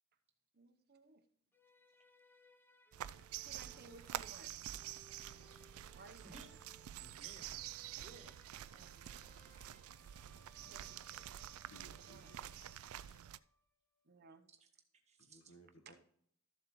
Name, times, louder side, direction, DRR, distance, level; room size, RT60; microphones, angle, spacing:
voice 1, 0.5-1.2 3.4-4.5 5.5-6.6 8.7-9.0 10.6-11.3 12.0-12.3 14.0-14.5 15.9-16.0, right 3 dB, 50° right, 9 dB, 0.8 m, -60 dB
sound 1, 1.5-13.6, left 1 dB, 10° left, 0.6 m, -67 dB
sound 2, 2.9-13.4, right 12 dB, 85° right, 0.3 m, -48 dB
sound 3, 3.7-13.4, right 3 dB, 10° right, 1.0 m, -73 dB
voice 2, 7.0-8.4 15.1-15.5, right 3 dB, 35° right, 4 dB, 1.4 m, -59 dB
voice 3, 11.7-13.2 15.2-16.0, equal, 90° left, 5 dB, 1.3 m, -62 dB
13.5 x 7.4 x 3.1 m, 0.66 s
head